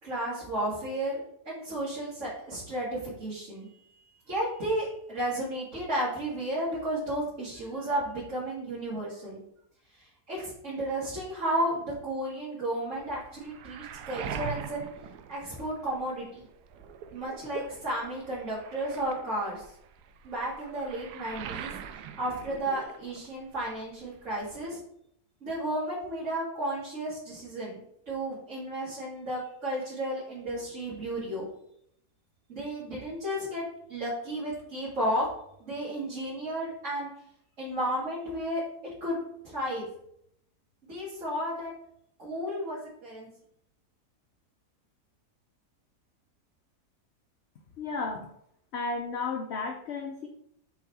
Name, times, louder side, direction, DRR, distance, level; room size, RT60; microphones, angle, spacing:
voice 1, 0.0-9.4 10.0-14.9 15.3-16.5 17.1-19.7 20.2-21.7 22.2-24.8 25.4-31.5 32.5-33.6 33.9-35.3 35.6-37.1 37.6-38.6 39.0-39.2 39.4-39.8 40.9-41.7 42.2-43.3, right 1 dB, 50° right, -9 dB, 2.2 m, -33 dB
Waves surf, 12.9-16.1 16.5-23.4 23.7-24.6, right 8 dB, 80° right, 1.1 m, -42 dB
voice 2, 47.8-48.3 48.7-50.3, left 4 dB, 60° left, 3 dB, 0.7 m, -33 dB
6.1 x 4.1 x 4.1 m, 0.72 s
omnidirectional pair, 1.7 m